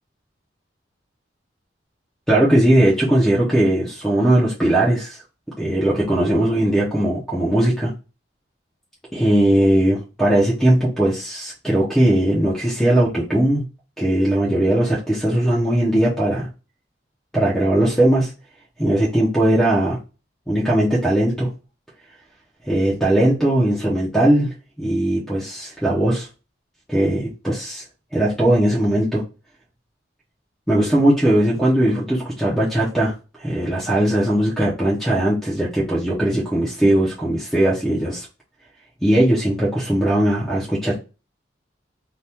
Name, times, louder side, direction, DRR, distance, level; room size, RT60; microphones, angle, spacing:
voice 1, 2.3-5.2 5.6-7.9 9.1-13.6 14.0-16.5 17.3-18.3 18.8-20.0 20.5-21.5 22.7-24.5 24.8-26.3 26.9-27.8 28.1-29.2 30.7-33.1 33.4-38.3 39.0-40.9, right 1 dB, 5° left, 0.6 m, -19 dB
2.8 x 2.3 x 3.4 m
head